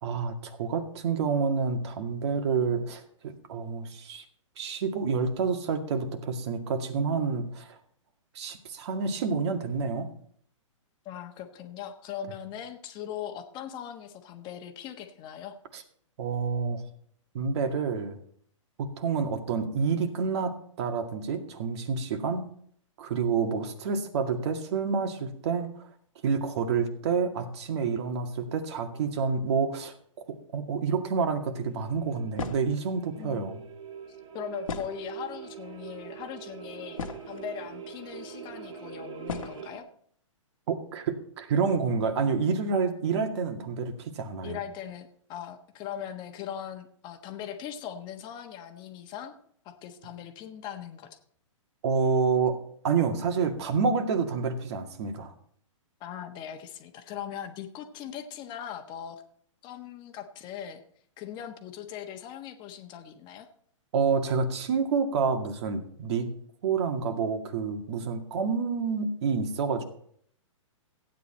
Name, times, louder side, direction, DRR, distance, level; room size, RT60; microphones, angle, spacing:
voice 1, 0.0-4.2 4.6-7.8 8.3-10.1 15.7-15.8 16.2-16.8 17.3-18.2 18.8-22.5 23.0-25.7 26.2-29.9 30.3-33.6 40.7-44.6 51.8-52.6 52.8-55.3 63.9-66.3 66.6-69.8, right 5 dB, 55° right, 5 dB, 2.1 m, -28 dB
voice 2, 11.0-15.6 33.2-33.5 34.3-39.9 44.4-49.4 49.6-51.1 56.0-59.2 59.6-60.8 61.2-63.5, left 9 dB, 25° left, 6 dB, 1.3 m, -40 dB
sound 1, 31.7-39.8, right 7 dB, 70° right, 2.8 m, -43 dB
sound 2, 32.4-32.8 34.6-35.4 36.2-36.3 36.7-37.5 38.4-38.5 39.3-39.6, left 5 dB, 85° left, 1.7 m, -36 dB
15.5 x 9.3 x 4.4 m, 0.63 s
hypercardioid pair, 140°, 17 cm